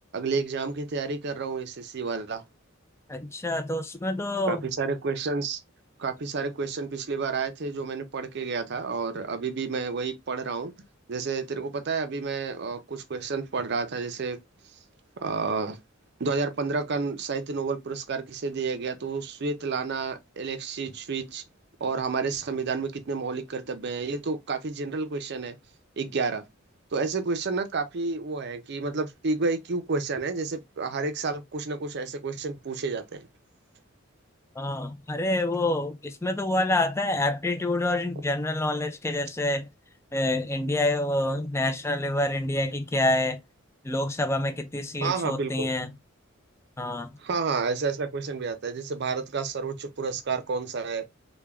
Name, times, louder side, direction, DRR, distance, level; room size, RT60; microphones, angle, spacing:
voice 1, 0.1-2.4 4.5-5.6 6.0-10.7 11.1-14.4 15.2-15.8 16.2-21.4 21.8-25.6 26.0-26.4 26.9-33.3 45.0-45.7 47.2-51.0, right 4 dB, 55° right, 0.6 m, -30 dB
voice 2, 3.1-4.6 34.6-39.7 40.1-43.4 43.8-45.9 46.8-47.1, left 1 dB, 15° left, 0.4 m, -27 dB
3.5 x 2.2 x 3.4 m
head